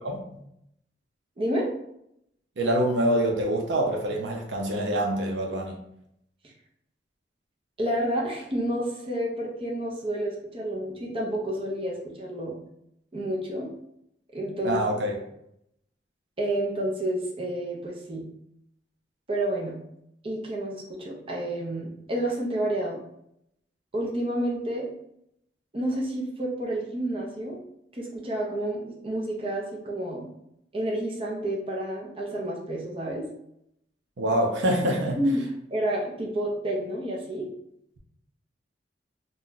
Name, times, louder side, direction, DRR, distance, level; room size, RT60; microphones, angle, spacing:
voice 1, 1.4-1.7 6.4-6.5 7.8-12.5 13.1-13.7 14.3-14.8 16.4-18.2 19.3-19.8 20.2-23.0 23.9-24.9 25.7-27.6 27.9-30.3 30.7-33.3 35.2-35.4 35.7-37.5, right 1 dB, 30° right, -2 dB, 0.6 m, -29 dB
voice 2, 2.6-5.8 14.6-15.2 34.2-35.2, right 1 dB, 85° right, 1 dB, 0.6 m, -25 dB
2.6 x 2.2 x 3.8 m, 0.76 s
head